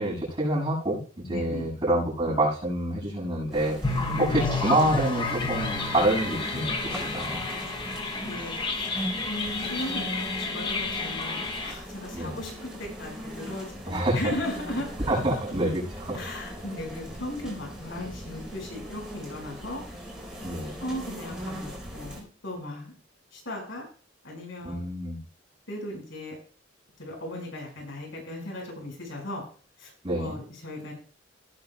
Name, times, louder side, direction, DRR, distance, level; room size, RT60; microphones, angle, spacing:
voice 1, 0.0-7.4 12.1-12.4 13.9-14.2 15.1-16.2 20.4-20.7 24.6-25.2 30.0-30.4, right 1 dB, 30° right, -9 dB, 6.6 m, -27 dB
voice 2, 1.3-1.8 3.9-4.3 8.2-8.9 9.3-14.9 16.1-19.8 20.8-22.9 23.3-23.8 24.2-24.8 25.7-26.3 27.0-29.4 29.8-29.9 30.2-30.9, left 1 dB, 70° left, 0 dB, 5.4 m, -37 dB
sound 1, 3.5-22.2, equal, 5° right, 4.5 m, -39 dB
sound 2, 3.8-11.7, left 3 dB, 25° left, 0.9 m, -31 dB
18.0 x 9.1 x 2.3 m, 0.40 s
head